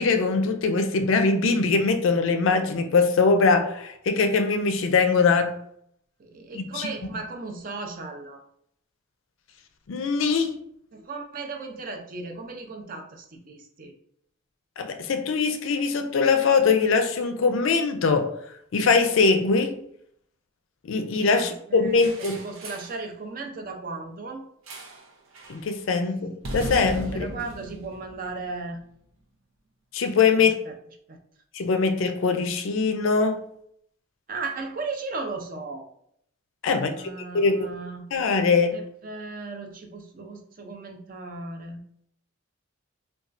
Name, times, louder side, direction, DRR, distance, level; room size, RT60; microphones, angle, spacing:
voice 1, 0.0-5.6 6.5-6.9 9.9-10.5 14.8-18.4 18.7-19.8 20.8-22.4 25.5-27.3 29.9-30.6 31.5-33.4 36.6-37.7 38.1-38.8, left 4 dB, 70° left, 0.4 m, -22 dB
voice 2, 6.2-8.4 10.9-13.9 21.3-24.4 27.1-28.8 30.4-30.7 31.1-31.2 34.3-35.9 36.7-38.1 38.7-41.8, right 3 dB, 40° right, 0.4 m, -36 dB
sound 1, 22.0-23.0 24.7-25.1 25.3-25.6 26.4-28.8, right 1 dB, 80° right, 0.7 m, -36 dB
4.1 x 2.3 x 2.5 m
head